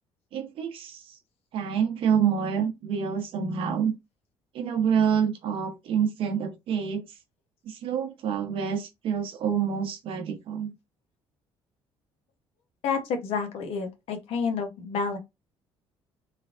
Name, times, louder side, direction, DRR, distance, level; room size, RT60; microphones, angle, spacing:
voice 1, 0.3-1.2 1.5-3.9 4.5-7.0 7.7-10.7, right 7 dB, 60° right, 0.9 m, -27 dB
voice 2, 12.8-15.2, left 5 dB, 70° left, 1.0 m, -29 dB
3.3 x 3.2 x 2.5 m
cardioid pair, 145°, 10 cm